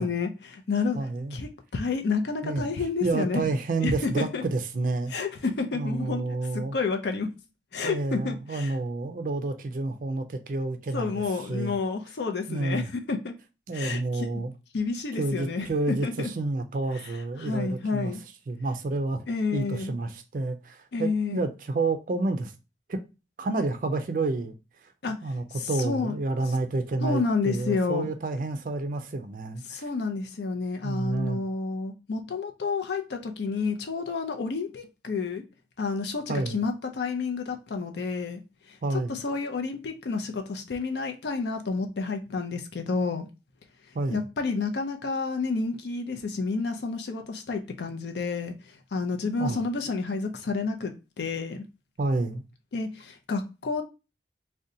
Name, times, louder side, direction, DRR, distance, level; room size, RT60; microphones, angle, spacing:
voice 1, 0.0-1.0 1.3-3.4 3.8-4.4 5.1-6.2 6.5-7.3 7.7-8.7 10.9-13.3 13.7-14.4 14.7-15.7 16.0-16.3 17.4-18.2 19.3-19.9 20.9-21.4 25.0-25.2 25.5-26.2 27.0-28.1 29.7-35.4 35.8-38.4 38.7-38.8 39.1-43.3 44.1-48.5 48.9-51.6 52.7-53.8, left 4 dB, 75° left, 0.5 m, -30 dB
voice 2, 0.9-1.4 2.4-2.7 3.0-5.2 5.7-6.8 7.8-11.8 12.5-12.9 13.7-14.5 15.1-18.1 18.5-19.2 19.5-22.5 22.9-23.0 23.4-24.5 24.8-29.8 30.8-31.4 36.3-36.6 38.8-39.2 43.9-44.2 49.4-49.6 52.0-52.4, right 3 dB, 50° right, 0.4 m, -29 dB
2.7 x 2.1 x 3.7 m
head